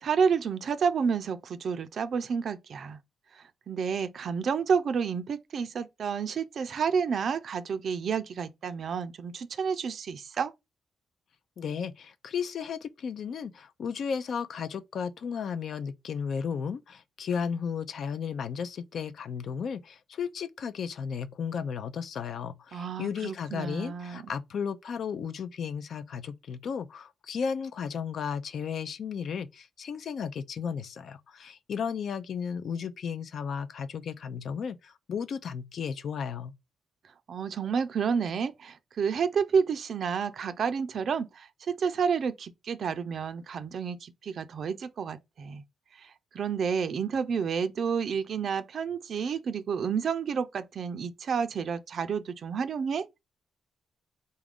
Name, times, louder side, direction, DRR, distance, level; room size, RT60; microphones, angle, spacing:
voice 1, 0.0-3.0 3.3-10.5 22.7-24.2 37.3-45.6 46.0-53.2, right 6 dB, 55° right, 0.4 m, -30 dB
voice 2, 11.6-36.5, left 6 dB, 60° left, 0.4 m, -34 dB
4.0 x 2.4 x 3.5 m
cardioid pair, 105°, 0 cm